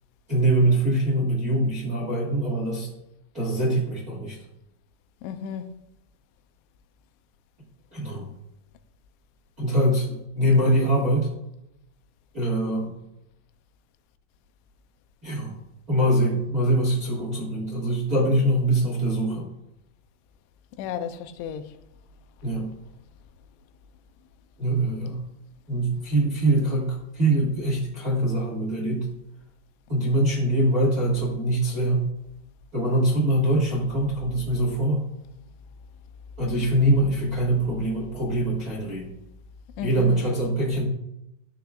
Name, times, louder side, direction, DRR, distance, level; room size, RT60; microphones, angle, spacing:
voice 1, 0.3-2.9 3.3-4.4 7.9-8.3 9.6-11.3 12.3-12.9 15.2-15.6 15.9-19.5 22.4-22.7 24.6-25.2 25.7-29.1 29.9-32.1 32.7-35.0 36.4-39.1 39.8-40.8, right 1 dB, 55° right, 0.9 m, -23 dB
voice 2, 5.2-5.8 20.8-21.7 39.8-40.2, left 8 dB, 85° left, 2.9 m, -33 dB
14.5 x 9.2 x 2.5 m
omnidirectional pair, 5.3 m